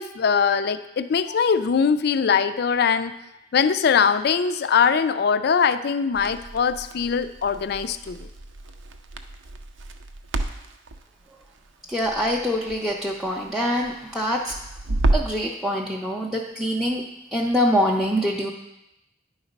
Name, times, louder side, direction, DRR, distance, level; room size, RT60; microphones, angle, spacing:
voice 1, 0.0-3.1 3.5-8.3, left 6 dB, 60° left, 12 dB, 0.4 m, -21 dB
Crackle, 6.1-15.4, right 2 dB, 80° right, 0.5 m, -31 dB
voice 2, 11.9-14.6 15.1-17.0 17.3-18.5, equal, ahead, -4 dB, 0.5 m, -24 dB
10.0 x 4.0 x 5.2 m, 0.89 s
head